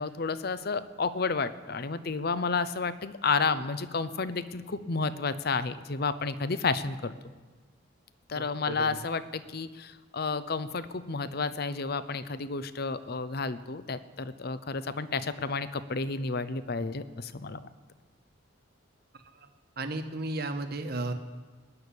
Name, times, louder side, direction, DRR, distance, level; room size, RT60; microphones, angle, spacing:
voice 1, 0.0-7.1 8.3-17.6, left 4 dB, 50° left, 14 dB, 0.7 m, -31 dB
voice 2, 8.3-9.0 19.4-19.5 19.8-21.1, right 2 dB, 50° right, 7 dB, 1.2 m, -34 dB
18.5 x 6.9 x 9.9 m, 1.4 s
head